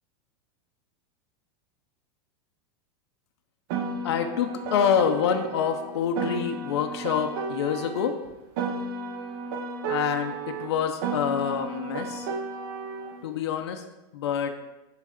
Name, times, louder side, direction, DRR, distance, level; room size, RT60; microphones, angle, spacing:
Piano, 3.7-8.2 8.6-13.2, right 4 dB, 60° right, 1.3 m, -33 dB
voice 1, 4.0-8.2 9.9-12.3 13.2-13.8 14.1-14.5, left 7 dB, 90° left, 5 dB, 1.0 m, -26 dB
10.5 x 3.9 x 6.6 m, 1.0 s
supercardioid pair, 145°, 13 cm